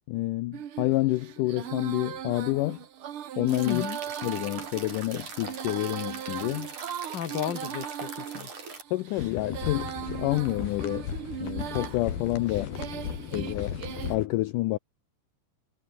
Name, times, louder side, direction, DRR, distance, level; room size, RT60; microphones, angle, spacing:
voice 1, 0.1-2.8 3.4-3.9 4.2-6.7 8.9-11.1 11.4-12.8 13.3-13.8 14.1-14.8, left 18 dB, 85° left, 1.8 m, -28 dB
Female singing, 0.5-14.2, right 10 dB, 75° right, 1.2 m, -39 dB
sound 1, 3.5-8.8, right 5 dB, 50° right, 6.6 m, -41 dB
voice 2, 3.6-4.0 7.1-8.5 13.3-13.6, left 9 dB, 50° left, 1.3 m, -35 dB
sound 2, 9.2-14.3, left 8 dB, 70° left, 5.0 m, -36 dB
omnidirectional pair, 4.5 m